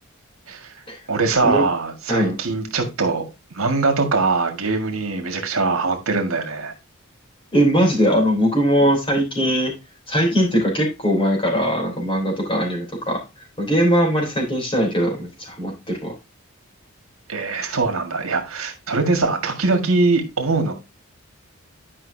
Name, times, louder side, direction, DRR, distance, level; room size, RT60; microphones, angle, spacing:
voice 1, 1.1-6.7 17.3-20.7, right 3 dB, 75° right, 1.8 m, -22 dB
voice 2, 7.5-9.7 10.1-13.2 13.6-16.1, equal, 25° left, 3.4 m, -20 dB
11.0 x 5.5 x 2.7 m
head